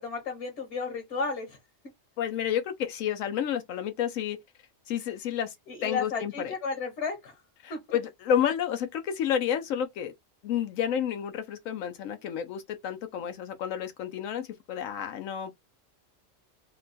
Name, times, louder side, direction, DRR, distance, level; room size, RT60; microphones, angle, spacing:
voice 1, 0.0-1.6 5.7-7.4 7.7-8.0, left 4 dB, 65° left, 1.2 m, -33 dB
voice 2, 2.2-4.4 4.9-5.6 5.8-6.5 7.6-10.1 10.4-15.5, left 9 dB, 85° left, 1.0 m, -30 dB
2.9 x 2.2 x 3.9 m
omnidirectional pair, 1.3 m